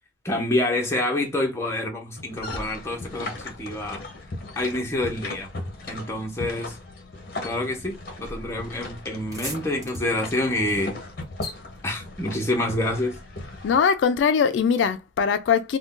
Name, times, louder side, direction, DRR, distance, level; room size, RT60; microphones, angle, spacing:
voice 1, 0.2-4.0 4.6-5.5 5.9-6.8 7.4-11.0 11.8-13.2, left 1 dB, 15° left, 0.7 m, -27 dB
sound 1, 2.2-13.8, left 2 dB, 50° left, 0.7 m, -37 dB
sound 2, 8.7-8.8 9.0-12.6, right 1 dB, 15° right, 0.9 m, -42 dB
voice 2, 13.6-15.8, left 6 dB, 75° left, 0.3 m, -21 dB
2.5 x 2.2 x 3.6 m
head